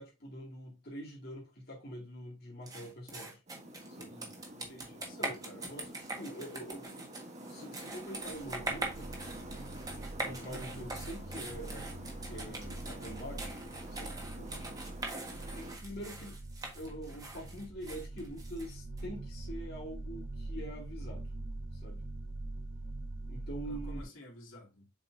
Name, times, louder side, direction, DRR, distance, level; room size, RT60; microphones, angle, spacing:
voice 1, 0.0-3.4 3.9-4.1 5.1-7.1 7.5-9.1 10.2-13.6 13.9-14.5 15.5-16.4 16.7-21.3 21.7-22.0 23.3-24.1, equal, 50° left, 2.3 m, -45 dB
sound 1, 2.7-19.0, right 2 dB, 20° right, 1.5 m, -43 dB
sound 2, 3.5-15.8, right 1 dB, 35° right, 1.2 m, -48 dB
voice 2, 4.1-5.4 23.6-24.9, left 1 dB, 80° left, 2.5 m, -53 dB
sound 3, 8.2-24.0, right 2 dB, 85° right, 1.0 m, -44 dB
7.4 x 5.0 x 2.6 m
head